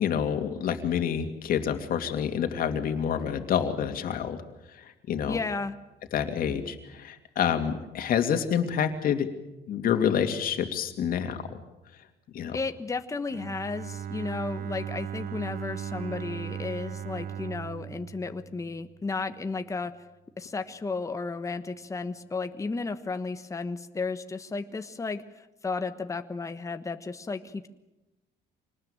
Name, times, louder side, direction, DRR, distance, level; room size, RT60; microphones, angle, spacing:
voice 1, 0.0-4.4 4.7-5.4 6.1-9.3 9.7-11.6 12.3-12.6, left 8 dB, 60° left, 6 dB, 2.7 m, -28 dB
voice 2, 5.3-5.7 12.5-19.9 20.4-27.7, left 4 dB, 20° left, 8 dB, 1.2 m, -33 dB
Bowed string instrument, 13.3-19.2, right 9 dB, 60° right, 0.9 m, -38 dB
26.0 x 19.5 x 9.0 m, 0.98 s
cardioid pair, 110°, 17 cm